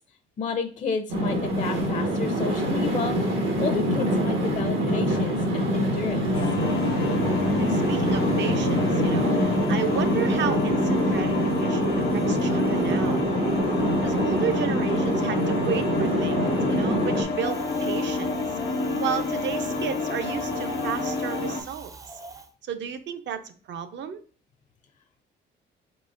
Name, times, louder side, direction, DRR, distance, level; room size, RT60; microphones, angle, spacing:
voice 1, 0.4-6.3, left 5 dB, 35° left, 7 dB, 0.5 m, -31 dB
sound 1, 1.1-17.2, equal, 85° right, 1.3 m, -25 dB
sound 2, 6.3-21.6, left 3 dB, 90° left, 1.1 m, -28 dB
voice 2, 7.6-9.3 9.7-13.2 14.0-16.4 16.7-18.3 19.0-21.9 22.6-24.2, right 8 dB, 65° right, 9 dB, 0.6 m, -32 dB
Wind, 17.4-22.5, right 2 dB, 15° right, 0.4 m, -40 dB
4.5 x 3.9 x 2.5 m, 0.41 s
cardioid pair, 90°, 20 cm